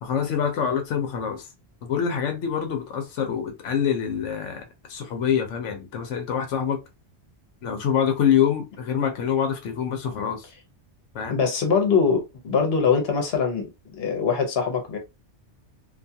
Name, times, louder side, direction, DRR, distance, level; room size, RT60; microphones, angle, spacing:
voice 1, 0.0-1.5 1.8-4.6 4.9-6.8 7.6-10.5 11.1-11.3, left 8 dB, 90° left, 1.0 m, -25 dB
voice 2, 11.3-13.7 13.9-15.0, left 5 dB, 60° left, 1.0 m, -22 dB
2.5 x 2.3 x 2.6 m
omnidirectional pair, 1.2 m